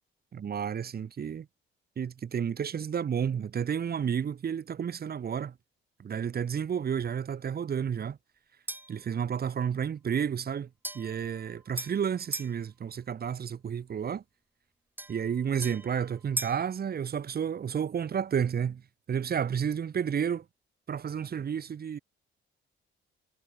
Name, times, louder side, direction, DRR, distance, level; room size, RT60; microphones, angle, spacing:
voice 1, 0.3-1.5 2.0-5.5 6.0-8.2 8.9-10.7 10.9-14.2 15.1-18.8 19.1-20.4 20.9-22.0, right 7 dB, 50° right, 2.9 m, -31 dB
sound 1, 8.7-9.0 10.8-12.6 15.0-16.7, right 2 dB, 10° right, 1.2 m, -39 dB
cardioid pair, 105°, 21 cm